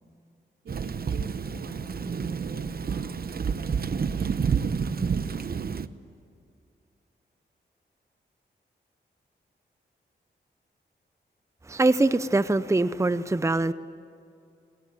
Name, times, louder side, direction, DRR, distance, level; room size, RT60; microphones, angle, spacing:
voice 1, 0.6-5.7, right 2 dB, 85° right, 2 dB, 4.8 m, -45 dB
Thunder / Rain, 0.7-5.9, right 6 dB, 55° right, 0.9 m, -29 dB
voice 2, 11.6-13.7, right 2 dB, 15° right, 14 dB, 0.7 m, -23 dB
27.5 x 20.5 x 9.6 m, 2.5 s
cardioid pair, 65°, 19 cm